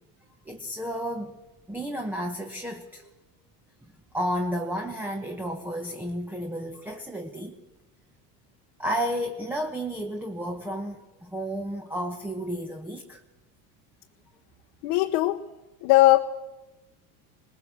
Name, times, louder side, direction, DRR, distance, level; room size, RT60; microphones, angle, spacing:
voice 1, 0.4-1.3 1.7-3.1 3.8-7.6 8.8-13.2, equal, 5° right, 4 dB, 1.2 m, -32 dB
voice 2, 14.8-15.4 15.8-16.2, left 17 dB, 70° left, 4 dB, 1.3 m, -19 dB
21.5 x 20.5 x 7.3 m, 1.1 s
supercardioid pair, 140°, 45 cm